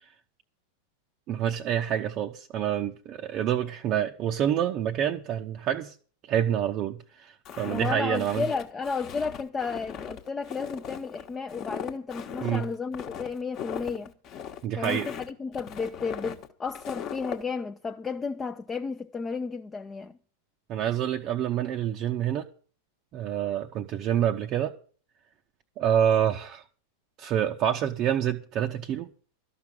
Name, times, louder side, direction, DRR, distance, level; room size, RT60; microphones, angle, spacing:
voice 1, 1.3-5.9 6.3-8.4 12.4-12.7 14.6-15.1 20.7-22.5 23.1-24.7 25.8-26.6 27.2-29.1, right 10 dB, 35° right, 0.7 m, -27 dB
Walk footsteps, 7.5-17.4, left 8 dB, 35° left, 1.2 m, -39 dB
voice 2, 7.7-14.1 14.7-20.2, left 5 dB, 15° left, 0.5 m, -33 dB
13.0 x 6.0 x 9.1 m
figure-of-eight pair, 90°, 0 cm